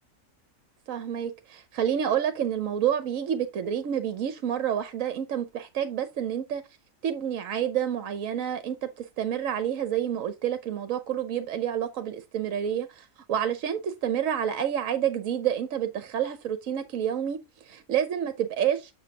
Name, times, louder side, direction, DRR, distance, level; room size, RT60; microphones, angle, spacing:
voice 1, 0.9-6.6 7.0-18.9, right 9 dB, 65° right, 1.1 m, -29 dB
7.1 x 6.2 x 2.8 m
omnidirectional pair, 1.6 m